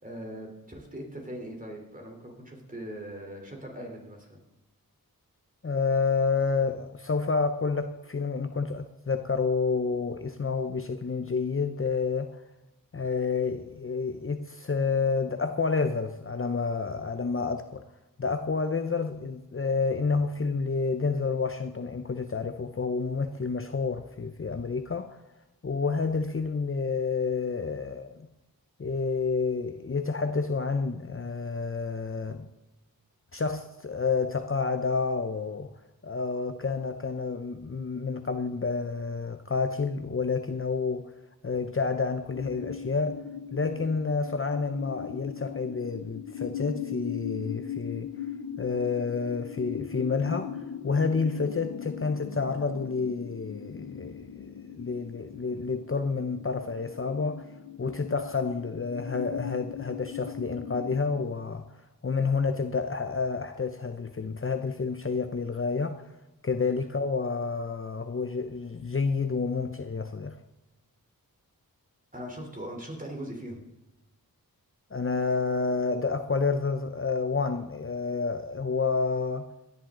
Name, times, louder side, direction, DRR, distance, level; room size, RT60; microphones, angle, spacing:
voice 1, 0.0-4.4 72.1-73.6, right 1 dB, 20° right, 3.8 m, -40 dB
voice 2, 5.6-12.4 12.9-17.8 18.2-25.2 25.6-28.3 28.8-32.5 33.3-35.7 36.0-41.1 41.4-43.2 43.5-48.1 48.6-54.5 54.8-57.4 57.8-61.7 62.0-66.0 66.4-70.4 74.9-79.5, left 4 dB, 35° left, 0.8 m, -29 dB
sound 1, 42.3-61.3, left 9 dB, 80° left, 0.9 m, -39 dB
17.5 x 11.0 x 3.9 m
wide cardioid pair, 75°, 36 cm